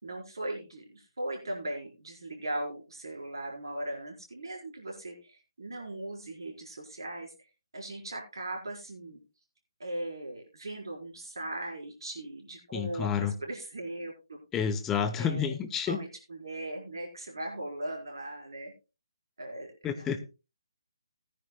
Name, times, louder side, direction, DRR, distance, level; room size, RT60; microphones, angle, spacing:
voice 1, 0.0-7.3 7.7-9.2 9.8-14.4 15.2-15.5 15.9-18.7 19.4-20.1, right 1 dB, 70° right, 0 dB, 4.5 m, -39 dB
voice 2, 12.7-13.3 14.5-16.0 19.8-20.2, left 7 dB, 15° left, 9 dB, 0.9 m, -29 dB
20.0 x 10.0 x 2.2 m, 0.29 s
figure-of-eight pair, 145°, 2 cm